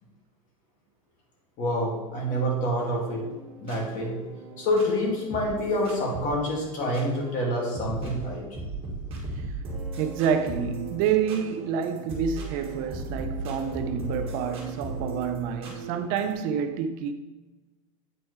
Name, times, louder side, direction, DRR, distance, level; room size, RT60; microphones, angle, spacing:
voice 1, 1.6-3.2 3.6-4.2 4.6-8.5, equal, 45° left, 2.3 m, -27 dB
sound 1, 2.8-16.3, right 2 dB, 30° right, 1.8 m, -37 dB
voice 2, 10.0-17.1, right 7 dB, 50° right, 0.5 m, -28 dB
8.8 x 4.5 x 3.2 m
supercardioid pair, 125°, 18 cm